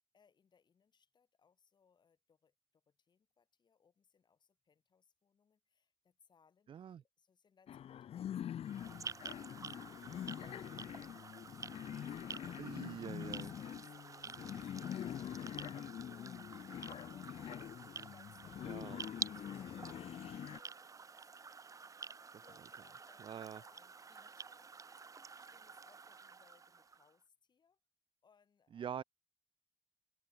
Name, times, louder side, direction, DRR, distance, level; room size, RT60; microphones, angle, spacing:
voice 1, 0.1-15.8 16.0-21.7 21.9-24.9 25.4-27.8 28.2-29.0, left 6 dB, 45° left, 4.5 m, -71 dB
voice 2, 6.7-7.0 12.6-13.5 18.7-19.0 23.2-23.6 28.7-29.0, right 8 dB, 55° right, 0.5 m, -45 dB
sound 1, 7.7-20.6, left 10 dB, 75° left, 0.5 m, -45 dB
sound 2, 8.6-27.1, right 5 dB, 35° right, 1.1 m, -50 dB
open air
wide cardioid pair, 165°, 10 cm